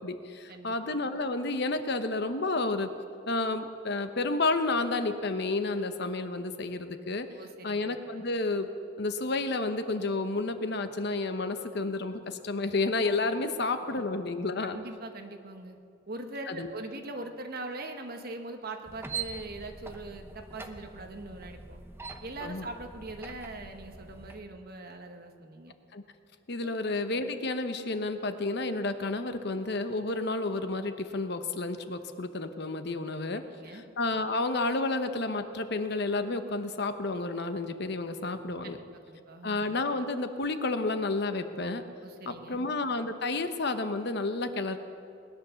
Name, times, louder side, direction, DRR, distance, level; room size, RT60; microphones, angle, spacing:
voice 1, 0.0-2.9 3.3-7.3 7.6-8.7 9.0-14.8 16.5-16.7 22.4-22.7 25.9-26.0 26.5-38.8 39.4-41.9 42.3-44.8, left 3 dB, 55° left, 9 dB, 0.9 m, -31 dB
voice 2, 7.3-7.8 14.7-15.8 16.1-21.8 22.2-25.7 26.6-26.8 33.5-33.8 38.6-38.8 39.1-39.6 42.0-42.6, right 2 dB, 50° right, 5 dB, 1.3 m, -41 dB
sound 1, 18.9-24.4, right 5 dB, 10° right, 0.8 m, -43 dB
20.0 x 10.5 x 7.0 m, 2.5 s
head